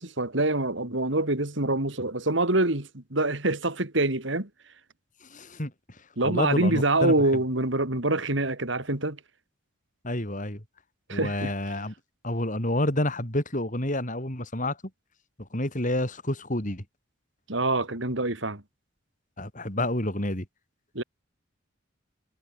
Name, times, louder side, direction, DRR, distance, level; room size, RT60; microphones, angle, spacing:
voice 1, 0.0-4.5 6.2-9.2 11.1-11.5 17.5-18.6 20.9-21.0, right 2 dB, 65° right, 2.9 m, -25 dB
voice 2, 5.3-5.7 6.2-7.1 10.0-10.6 11.1-11.9 12.2-14.8 15.4-16.8 19.4-20.5, left 1 dB, 40° left, 5.6 m, -29 dB
head